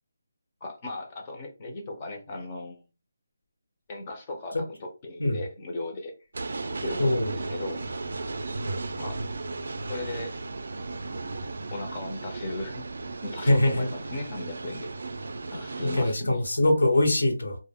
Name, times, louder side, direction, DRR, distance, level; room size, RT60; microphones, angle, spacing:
voice 1, 0.6-2.8 3.9-6.1 6.8-7.8 9.0-9.2 9.9-10.4 11.7-12.9 13.2-14.9 15.5-16.4, left 2 dB, 20° left, 0.5 m, -36 dB
sound 1, 6.3-16.1, right 3 dB, 60° right, 0.3 m, -35 dB
voice 2, 7.0-7.3 13.5-13.9 15.8-17.6, left 1 dB, 85° left, 1.0 m, -22 dB
2.1 x 2.1 x 3.4 m
hypercardioid pair, 175°, 0 cm